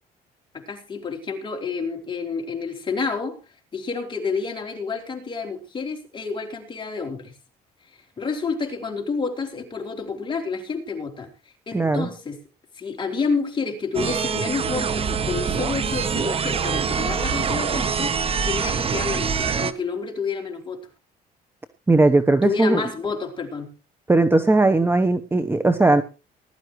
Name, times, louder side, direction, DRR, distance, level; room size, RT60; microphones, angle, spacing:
voice 1, 0.5-3.4 3.7-7.3 8.2-11.3 11.7-12.4 12.7-18.2 18.4-20.8 22.4-23.7, left 5 dB, 30° left, 3 dB, 3.7 m, -29 dB
voice 2, 11.7-12.1 21.9-22.8 24.1-26.0, right 2 dB, 15° right, 9 dB, 1.0 m, -18 dB
sound 1, 13.9-19.7, right 6 dB, 35° right, 1.0 m, -24 dB
20.0 x 12.0 x 3.1 m, 0.32 s
cardioid pair, 110°, 17 cm